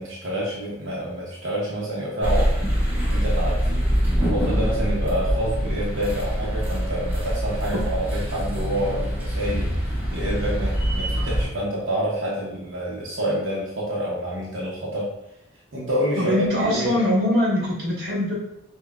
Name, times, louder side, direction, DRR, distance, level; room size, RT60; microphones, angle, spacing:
voice 1, 0.0-3.8 4.2-15.1 15.7-17.0, equal, 85° right, -6 dB, 0.8 m, -28 dB
sound 1, 2.2-11.5, equal, 10° right, 0.9 m, -24 dB
voice 2, 16.2-18.3, left 1 dB, 50° right, -5 dB, 1.4 m, -22 dB
5.4 x 2.2 x 2.3 m, 0.85 s
head